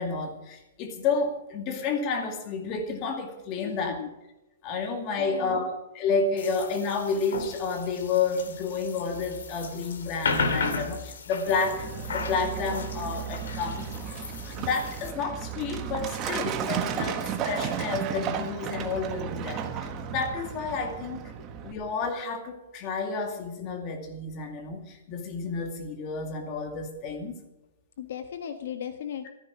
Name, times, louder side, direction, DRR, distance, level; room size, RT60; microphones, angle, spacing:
voice 1, 0.0-4.0 4.6-5.7 5.9-14.2 14.5-17.2 17.4-21.2 21.6-27.4, left 4 dB, 25° left, 5 dB, 2.2 m, -30 dB
voice 2, 3.6-4.1 5.2-5.7 17.0-17.1 21.4-21.5 28.0-29.3, left 9 dB, 60° left, 7 dB, 1.5 m, -37 dB
sound 1, 6.4-15.1, left 4 dB, 85° left, 2.7 m, -35 dB
Truck, 11.5-21.7, right 8 dB, 20° right, 1.2 m, -34 dB
15.0 x 14.0 x 5.0 m, 0.99 s
hypercardioid pair, 175°, 0 cm